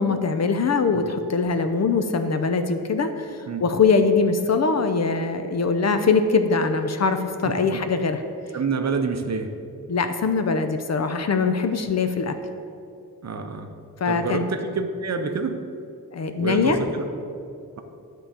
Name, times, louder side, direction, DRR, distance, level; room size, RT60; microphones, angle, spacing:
voice 1, 0.0-8.2 9.9-12.3 14.0-14.4 16.1-16.8, left 4 dB, 45° left, 8 dB, 0.6 m, -22 dB
voice 2, 7.5-7.8 8.5-9.6 13.2-13.7 14.1-15.6 16.4-17.1, right 4 dB, 45° right, 6 dB, 0.7 m, -27 dB
9.7 x 3.8 x 6.9 m, 2.5 s
wide cardioid pair, 110°, 37 cm